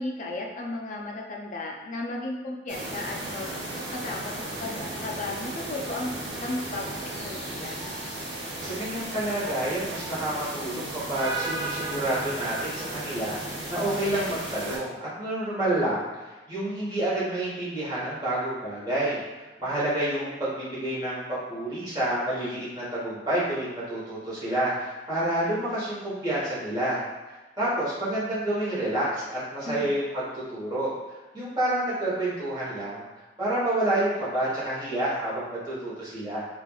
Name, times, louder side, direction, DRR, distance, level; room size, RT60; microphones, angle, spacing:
voice 1, 0.0-7.8 29.7-30.0, left 2 dB, 45° left, 1 dB, 0.4 m, -35 dB
sound 1, 2.7-14.8, right 2 dB, 85° right, 0.8 m, -35 dB
voice 2, 8.3-21.2 21.5-33.0 33.4-36.5, right 1 dB, 25° right, -9 dB, 1.0 m, -29 dB
3.2 x 2.3 x 2.2 m, 1.2 s
head